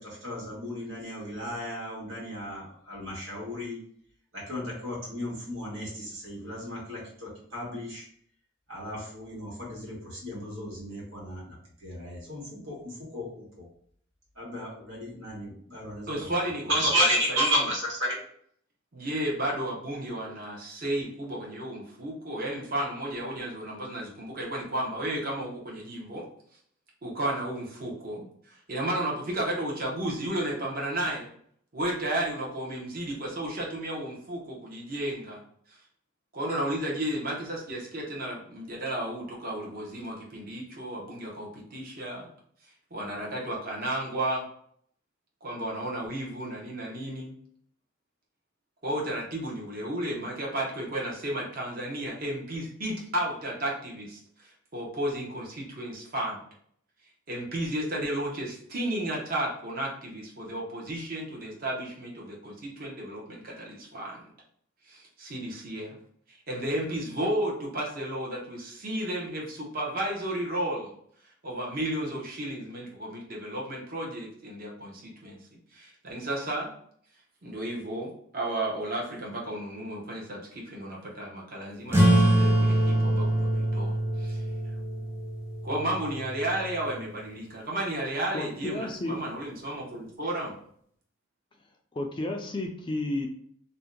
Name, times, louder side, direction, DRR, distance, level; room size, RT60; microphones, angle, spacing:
voice 1, 0.0-3.8 4.3-8.0 8.7-13.7 14.4-16.3 16.6-18.2, equal, 85° right, -4 dB, 1.4 m, -33 dB
voice 2, 16.1-17.7 18.9-26.3 27.0-31.3 31.7-35.4 36.3-42.3 42.9-44.5 45.4-47.4 48.8-56.4 57.3-64.3 64.9-66.0 66.3-70.9 71.4-75.4 75.7-76.7 77.4-84.4 85.6-90.6, right 1 dB, 45° right, -2 dB, 0.8 m, -33 dB
sound 1, 81.9-87.0, right 1 dB, 10° right, 0.8 m, -25 dB
voice 3, 88.3-89.2 91.9-93.3, left 2 dB, 25° left, 3 dB, 0.3 m, -32 dB
2.7 x 2.1 x 3.7 m, 0.63 s
head